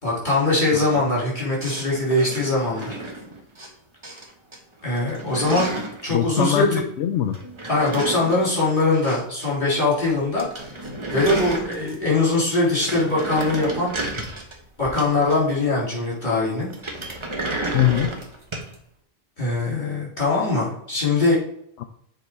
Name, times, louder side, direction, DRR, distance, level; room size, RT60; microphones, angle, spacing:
voice 1, 0.0-3.0 4.8-5.7 6.0-6.8 7.7-10.5 11.1-14.0 14.8-16.7 19.4-21.4, left 2 dB, 40° left, -6 dB, 3.6 m, -22 dB
sound 1, 1.6-3.7 4.0-4.6 4.8-6.0 7.3-9.5 9.7-9.8 10.1-10.2 10.4-12.1 12.5-15.6 16.7-18.7, right 2 dB, 25° right, 1.1 m, -32 dB
voice 2, 6.1-7.4 17.7-18.1 21.8-21.9, left 11 dB, 80° left, 7 dB, 0.9 m, -22 dB
7.7 x 3.8 x 4.7 m, 0.70 s
omnidirectional pair, 1.2 m